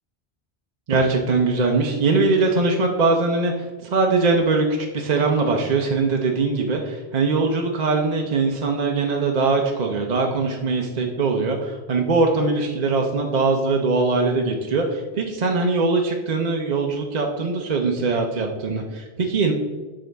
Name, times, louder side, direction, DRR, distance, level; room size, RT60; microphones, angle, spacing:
voice 1, 0.9-19.5, right 3 dB, 45° right, 2 dB, 0.7 m, -21 dB
10.5 x 3.8 x 3.4 m, 1.4 s
omnidirectional pair, 1.1 m